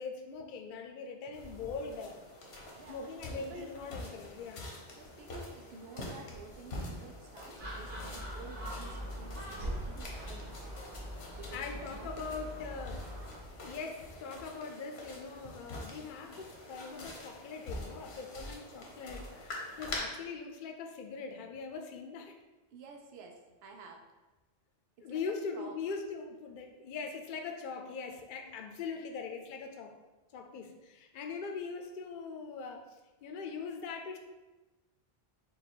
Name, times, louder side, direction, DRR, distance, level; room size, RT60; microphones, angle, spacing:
voice 1, 0.0-2.2 2.9-4.7 11.5-13.1 13.6-22.4 25.0-30.0 30.3-34.2, left 5 dB, 60° left, 3 dB, 0.6 m, -41 dB
sound 1, 1.3-20.0, left 1 dB, 85° left, 1.1 m, -46 dB
voice 2, 2.7-3.7 4.9-10.9 11.4-12.8 19.2-19.3 22.7-24.1 25.0-25.8 28.5-28.6, right 4 dB, 80° right, 2 dB, 0.8 m, -51 dB
Gull seagull, 7.6-13.4, equal, 55° right, 1.3 m, -42 dB
4.7 x 2.3 x 4.3 m, 1.1 s
omnidirectional pair, 1.0 m